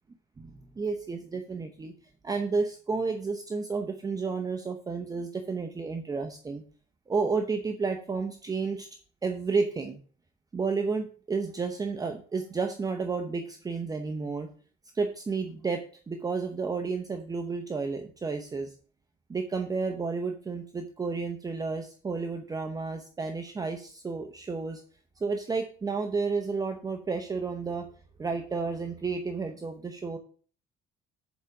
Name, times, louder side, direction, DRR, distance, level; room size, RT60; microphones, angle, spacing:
voice 1, 0.4-1.9 2.2-6.6 7.1-8.9 9.2-10.0 10.5-14.5 14.9-18.7 19.3-24.8 25.2-27.9 28.2-30.2, right 4 dB, 20° right, 5 dB, 0.8 m, -31 dB
7.1 x 5.0 x 5.9 m, 0.43 s
cardioid pair, 110°, 17 cm